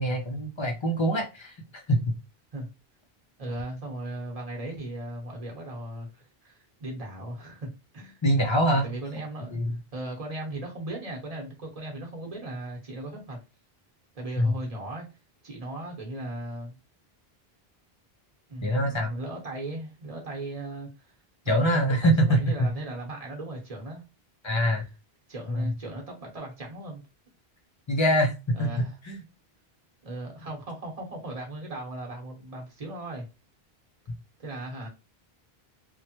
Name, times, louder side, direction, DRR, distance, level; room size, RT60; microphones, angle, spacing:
voice 1, 0.0-2.1 8.2-8.8 9.5-9.7 14.4-14.6 18.6-19.1 21.5-22.7 24.4-24.8 25.5-25.7 27.9-28.7 29.0-29.2, equal, 35° left, 0.5 m, -24 dB
voice 2, 3.4-8.2 8.7-9.6 9.9-13.4 14.1-15.1 15.4-16.7 18.5-21.1 21.4-24.0 25.3-27.0 28.5-29.0 30.0-33.3 34.4-34.9, right 1 dB, 40° right, 1.0 m, -37 dB
3.2 x 2.2 x 2.8 m
omnidirectional pair, 1.0 m